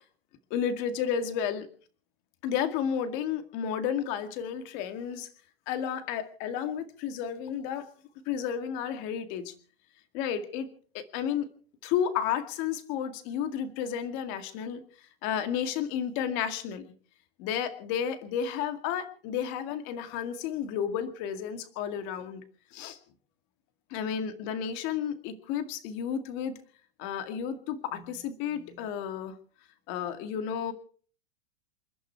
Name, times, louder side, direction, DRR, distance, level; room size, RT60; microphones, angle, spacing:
voice 1, 0.5-1.7 2.4-5.3 5.7-7.9 8.3-9.5 10.1-10.7 10.9-11.5 11.8-14.8 15.2-16.9 17.4-22.4 22.7-23.0 23.9-26.6 27.0-29.3 29.9-30.7, left 8 dB, 40° left, 10 dB, 2.1 m, -32 dB
28.5 x 11.0 x 4.6 m, 0.43 s
supercardioid pair, 155°, 29 cm